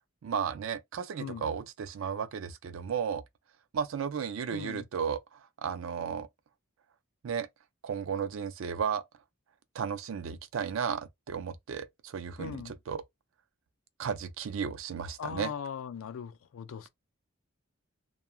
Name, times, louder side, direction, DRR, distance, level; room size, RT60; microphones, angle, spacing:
voice 1, 0.2-3.2 3.7-6.3 7.2-7.5 7.8-9.0 9.7-13.0 14.0-15.5, right 7 dB, 70° right, 0.4 m, -34 dB
voice 2, 4.5-4.9 12.4-12.7 15.2-16.9, left 7 dB, 75° left, 0.4 m, -39 dB
2.3 x 2.2 x 2.9 m
head